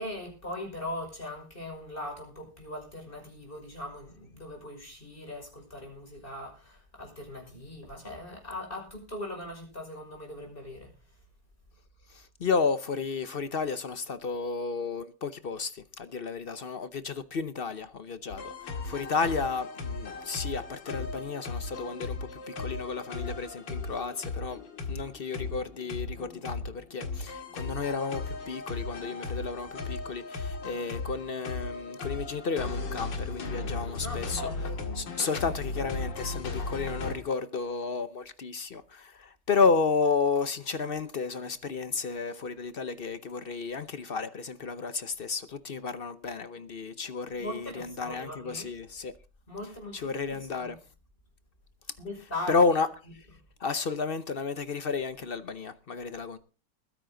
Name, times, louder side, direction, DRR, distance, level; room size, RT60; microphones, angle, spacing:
voice 1, 0.0-10.9 34.0-34.7 47.3-48.7 49.5-50.8 52.0-52.5, left 1 dB, 30° left, 6.1 m, -40 dB
voice 2, 12.1-22.2 22.5-24.6 24.9-34.5 35.0-49.1 49.9-50.8 52.5-52.9 53.1-53.3 53.6-56.4, left 4 dB, 50° left, 0.7 m, -32 dB
sound 1, 18.3-37.1, left 3 dB, 80° left, 2.6 m, -36 dB
21.0 x 9.9 x 3.8 m
omnidirectional pair, 1.9 m